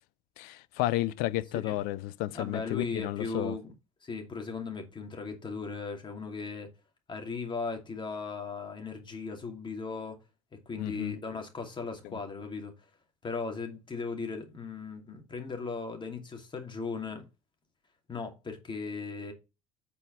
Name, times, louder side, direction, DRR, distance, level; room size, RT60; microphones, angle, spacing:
voice 1, 0.4-3.6 10.8-11.1 12.0-12.2, left 16 dB, 55° left, 0.6 m, -32 dB
voice 2, 2.3-3.7 4.0-6.7 7.1-10.2 10.7-12.7 13.2-17.3 18.1-19.3, left 4 dB, 25° left, 2.7 m, -37 dB
8.4 x 4.6 x 6.1 m
figure-of-eight pair, 65°, 18 cm